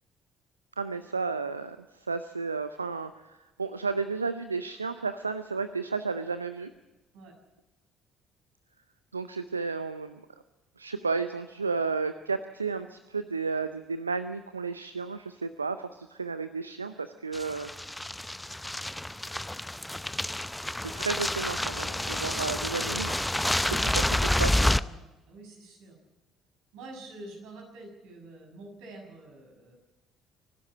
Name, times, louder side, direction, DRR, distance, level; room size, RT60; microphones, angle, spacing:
voice 1, 0.8-6.7 9.1-10.2 10.8-17.7 20.8-23.3 23.9-24.0 24.4-24.7, right 4 dB, 90° right, 11 dB, 0.6 m, -32 dB
sound 1, 17.3-24.8, left 1 dB, 5° left, 0.6 m, -29 dB
voice 2, 23.7-24.2 24.7-25.9 26.7-29.8, right 2 dB, 65° right, 2 dB, 6.1 m, -46 dB
24.5 x 12.0 x 8.6 m, 1.1 s
figure-of-eight pair, 50°, 0 cm